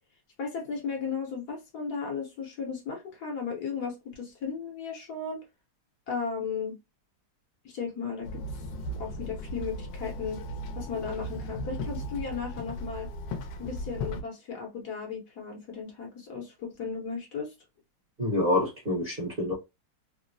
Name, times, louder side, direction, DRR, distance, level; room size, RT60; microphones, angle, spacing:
voice 1, 0.4-5.4 6.1-6.8 7.6-8.6 9.0-10.4 10.8-13.1 13.6-17.5, left 5 dB, 65° left, 1.2 m, -35 dB
Walk footsteps / Chatter / Hiss, 8.2-14.2, equal, 85° left, 1.3 m, -36 dB
voice 2, 18.2-19.5, left 1 dB, 35° right, 1.0 m, -27 dB
3.6 x 2.0 x 2.5 m
omnidirectional pair, 1.9 m